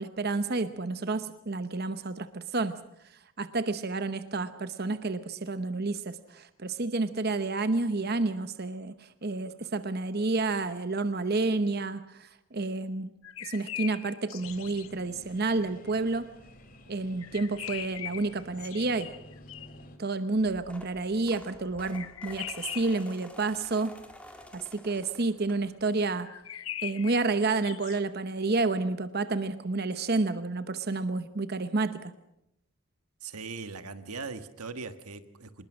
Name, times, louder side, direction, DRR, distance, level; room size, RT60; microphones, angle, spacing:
voice 1, 0.0-2.8 3.4-13.1 13.4-16.3 16.9-19.1 20.0-23.9 24.5-26.3 26.8-32.1, right 3 dB, 45° right, 11 dB, 0.9 m, -30 dB
sound 1, 13.2-14.9 17.2-19.8 21.9-23.1 26.2-28.0, left 12 dB, 65° left, 0.9 m, -41 dB
sound 2, 14.4-20.0, equal, 40° left, 2.7 m, -52 dB
sound 3, 20.3-26.0 26.4-26.7 27.9-28.0 28.3-28.4 28.7-28.9, left 1 dB, 5° left, 2.1 m, -50 dB
voice 2, 33.2-35.7, right 4 dB, 85° right, 10 dB, 1.4 m, -40 dB
25.5 x 20.5 x 6.3 m, 0.80 s
head